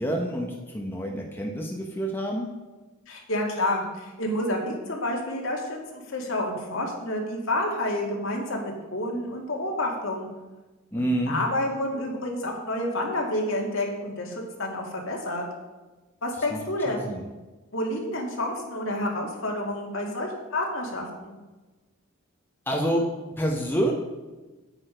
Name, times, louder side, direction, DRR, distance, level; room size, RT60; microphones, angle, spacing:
voice 1, 0.0-2.5 10.9-11.4 16.5-16.6 16.9-17.2 22.7-23.0 23.4-23.9, right 1 dB, 10° left, 0 dB, 1.0 m, -27 dB
voice 2, 3.1-10.3 11.0-15.4 16.2-17.1 17.7-21.4, left 1 dB, 65° left, 0 dB, 2.3 m, -29 dB
8.8 x 8.6 x 5.1 m, 1.2 s
head